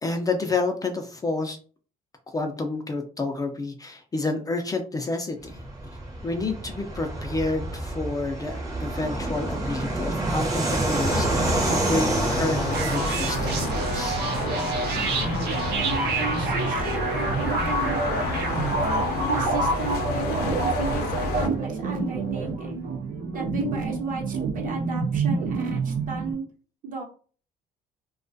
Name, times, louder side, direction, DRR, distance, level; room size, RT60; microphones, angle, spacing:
voice 1, 0.0-1.6 2.3-5.6 6.2-14.2, left 3 dB, 20° left, 4 dB, 0.4 m, -29 dB
Fixed-wing aircraft airplane, 5.4-21.6, right 2 dB, 20° right, 0.7 m, -30 dB
sound 1, 11.0-21.5, left 4 dB, 75° left, 0.5 m, -31 dB
sound 2, 12.7-26.3, right 3 dB, 75° right, 0.5 m, -27 dB
voice 2, 15.8-18.0 19.3-22.8 23.3-26.4 26.8-27.0, right 4 dB, 50° right, 0 dB, 0.9 m, -34 dB
2.3 x 2.2 x 2.5 m, 0.39 s
cardioid pair, 110°, 17 cm